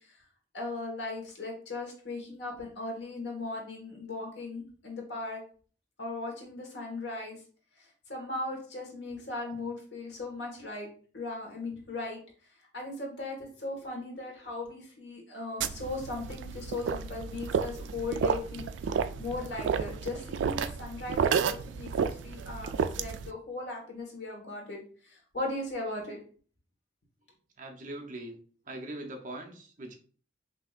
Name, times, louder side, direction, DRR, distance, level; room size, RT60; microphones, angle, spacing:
voice 1, 0.5-5.4 6.0-7.4 7.8-10.9 11.1-12.2 12.7-26.2, left 2 dB, 70° left, 0 dB, 1.5 m, -38 dB
sound 1, 15.6-23.3, right 7 dB, 85° right, 0.3 m, -31 dB
voice 2, 27.6-28.4 28.7-29.9, right 1 dB, 45° right, 2 dB, 0.8 m, -41 dB
5.5 x 2.9 x 2.4 m, 0.43 s
head